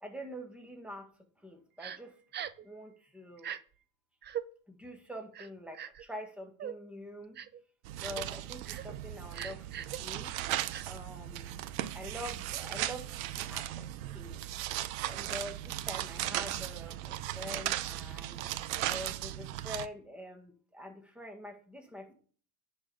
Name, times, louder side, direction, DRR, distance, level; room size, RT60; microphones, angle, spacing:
voice 1, 0.0-1.1 1.4-2.2 2.6-3.5 4.7-7.4 8.0-10.4 10.9-11.5 11.9-13.9 14.1-14.4 15.1-18.4 18.8-22.1, equal, 5° right, 3 dB, 1.8 m, -45 dB
Crying sobbing, 1.8-2.0 2.3-2.7 3.4-3.6 4.2-4.4 5.3-6.0 6.6-6.8 7.4-7.6 8.0-8.3 8.6-8.9 9.3-10.0 10.7-10.8, right 10 dB, 25° right, 0.5 m, -40 dB
sound 1, 7.8-19.9, right 14 dB, 80° right, 0.7 m, -37 dB
10.5 x 4.5 x 4.9 m, 0.43 s
supercardioid pair, 115°, 40 cm